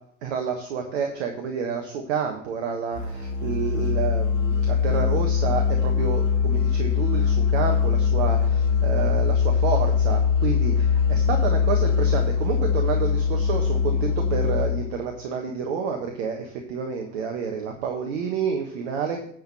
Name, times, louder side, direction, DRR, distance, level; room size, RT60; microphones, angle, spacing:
voice 1, 0.2-19.2, right 6 dB, 60° right, 3 dB, 1.4 m, -29 dB
Musical instrument, 2.9-14.9, left 6 dB, 85° left, 1.9 m, -22 dB
9.4 x 5.2 x 7.3 m, 0.64 s
figure-of-eight pair, 70°, 37 cm